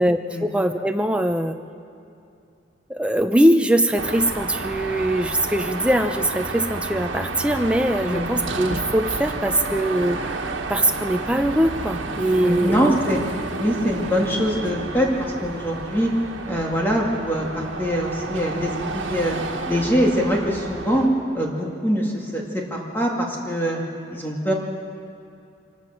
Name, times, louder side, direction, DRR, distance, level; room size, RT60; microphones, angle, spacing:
voice 1, 0.0-1.6 2.9-10.2 10.7-13.0, right 1 dB, 5° right, 6 dB, 0.7 m, -21 dB
Car passing by / Traffic noise roadway noise / Engine, 4.0-21.1, right 3 dB, 80° right, 1.6 m, -31 dB
voice 2, 12.4-13.2 13.6-16.1 16.5-19.4 19.7-21.1 21.3-23.8 24.1-24.5, equal, 10° left, -2 dB, 2.1 m, -23 dB
25.5 x 16.5 x 6.5 m, 2.6 s
head